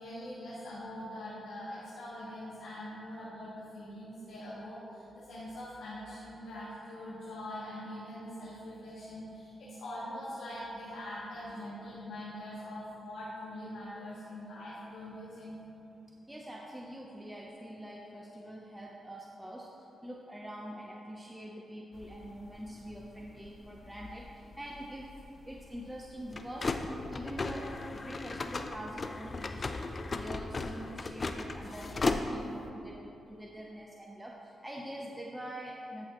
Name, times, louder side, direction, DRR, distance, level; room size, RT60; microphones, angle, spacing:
voice 1, 0.0-15.6, left 1 dB, 90° left, -9 dB, 1.7 m, -43 dB
voice 2, 16.3-25.2 25.4-26.8 27.1-29.8 30.1-36.1, equal, 10° right, -2 dB, 0.7 m, -45 dB
sound 1, 21.9-32.7, left 3 dB, 40° left, 0.5 m, -37 dB
13.5 x 6.5 x 3.0 m, 3.0 s
cardioid pair, 80°, 0 cm